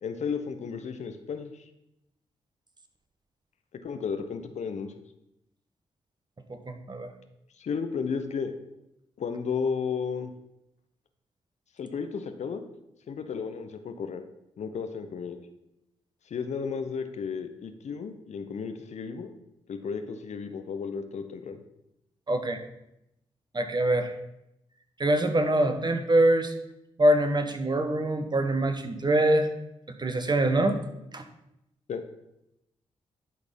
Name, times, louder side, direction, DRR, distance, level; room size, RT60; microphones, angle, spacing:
voice 1, 0.0-1.5 3.8-4.9 7.6-8.5 9.2-10.3 11.8-12.6 13.1-14.2 14.6-15.4 16.3-19.3 19.7-21.6 31.9-32.0, left 6 dB, 60° left, 8 dB, 0.8 m, -33 dB
voice 2, 6.5-7.1 22.3-22.6 23.5-24.1 25.0-26.5 27.0-29.5 30.0-30.8 31.1-31.2, right 1 dB, 35° right, 7 dB, 1.3 m, -24 dB
11.0 x 4.1 x 5.3 m, 0.84 s
hypercardioid pair, 40°, 13 cm